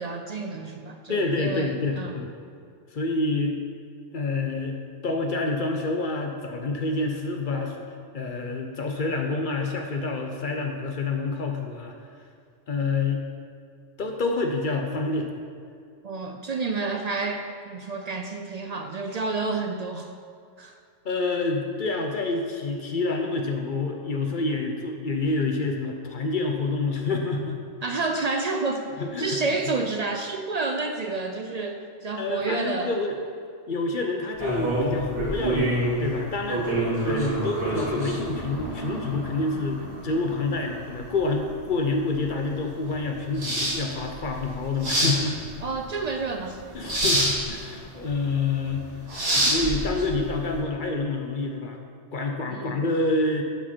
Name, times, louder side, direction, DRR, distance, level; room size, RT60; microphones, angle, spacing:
voice 1, 0.0-2.2 16.0-20.1 20.6-20.7 27.8-28.9 29.2-32.9 45.6-46.6 52.5-52.8, right 3 dB, 65° right, 4 dB, 0.4 m, -29 dB
voice 2, 1.1-2.3 2.9-3.6 4.1-7.8 8.1-12.0 12.7-13.2 14.0-15.3 21.0-27.6 29.0-29.5 32.2-33.2 33.7-36.7 37.0-45.4 46.7-48.9 49.3-51.8 52.1-53.4, left 3 dB, 50° left, 3 dB, 0.8 m, -27 dB
sound 1, 34.3-50.5, right 1 dB, 90° right, 2.9 m, -28 dB
11.0 x 4.9 x 4.4 m, 2.3 s
omnidirectional pair, 1.2 m